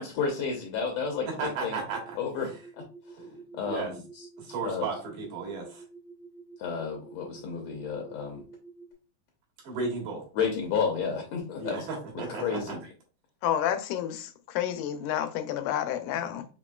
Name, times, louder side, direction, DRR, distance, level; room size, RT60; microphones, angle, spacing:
voice 1, 0.0-1.3 1.6-1.8 2.2-2.5 3.6-4.0 4.6-4.9 6.6-8.4 10.4-11.9 12.4-12.8, left 5 dB, 75° left, 1.6 m, -31 dB
voice 2, 1.3-2.6 3.2-3.3 3.5-3.9 4.4-5.8 9.6-10.3 11.6-12.8, right 4 dB, 80° right, 2.9 m, -35 dB
sound 1, 1.9-8.9, right 4 dB, 35° right, 0.8 m, -49 dB
voice 3, 13.4-16.5, left 10 dB, 90° left, 2.1 m, -30 dB
5.9 x 3.0 x 2.3 m
omnidirectional pair, 3.5 m